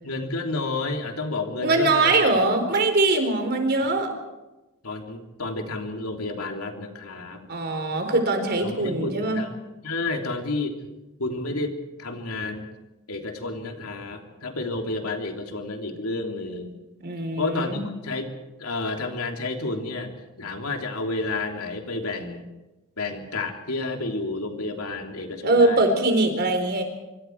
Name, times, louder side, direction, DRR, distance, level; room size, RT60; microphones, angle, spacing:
voice 1, 0.0-2.3 4.8-7.5 8.6-9.5 9.8-10.8 11.2-12.6 13.1-16.7 17.4-18.3 18.6-22.5 23.0-25.9, left 2 dB, 85° left, 3 dB, 3.1 m, -30 dB
voice 2, 1.6-4.1 7.5-9.4 17.0-17.8 25.4-26.8, right 2 dB, 50° right, 6 dB, 4.2 m, -22 dB
25.5 x 25.0 x 4.7 m, 1.0 s
head